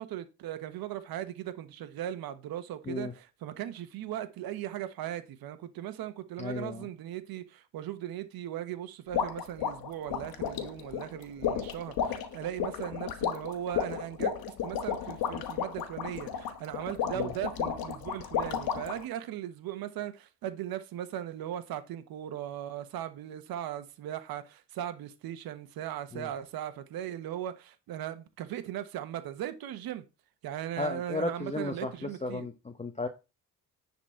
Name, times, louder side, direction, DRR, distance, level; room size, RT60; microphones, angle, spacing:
voice 1, 0.0-30.0 30.4-32.5, right 11 dB, 70° right, 1.2 m, -38 dB
voice 2, 6.4-6.8 17.1-17.3 26.1-26.3 30.8-33.1, left 3 dB, 20° left, 1.0 m, -34 dB
sound 1, 9.1-19.0, left 8 dB, 75° left, 1.5 m, -33 dB
10.0 x 4.3 x 4.4 m
supercardioid pair, 75°, 37 cm